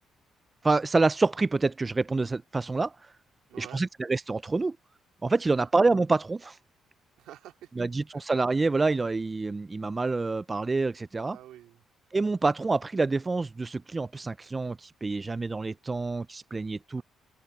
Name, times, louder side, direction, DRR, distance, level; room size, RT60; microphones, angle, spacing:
voice 1, 0.6-2.9 3.6-4.8 5.2-6.6 7.8-11.4 12.1-17.0, right 3 dB, 25° right, 0.3 m, -27 dB
voice 2, 3.5-3.8 5.6-5.7 7.2-7.7 11.2-11.8, right 13 dB, 90° right, 2.3 m, -48 dB
open air
cardioid pair, 90°, 0 cm